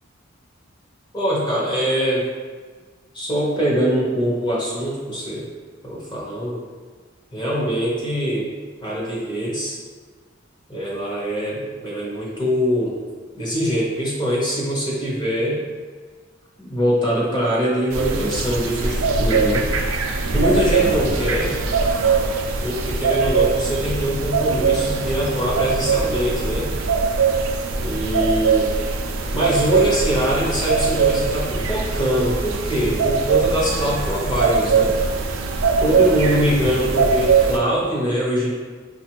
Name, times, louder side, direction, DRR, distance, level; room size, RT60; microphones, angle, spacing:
voice 1, 1.1-2.3 3.1-5.5 5.8-6.6 7.3-8.5 8.8-9.8 10.7-13.0 13.3-15.6 16.6-19.7 20.3-21.6 22.6-26.7 27.8-28.8 29.3-35.0 35.8-38.5, equal, 20° left, -6 dB, 0.9 m, -23 dB
sound 1, 17.9-37.6, right 4 dB, 80° right, 0.4 m, -21 dB
5.1 x 2.5 x 2.9 m, 1.5 s
head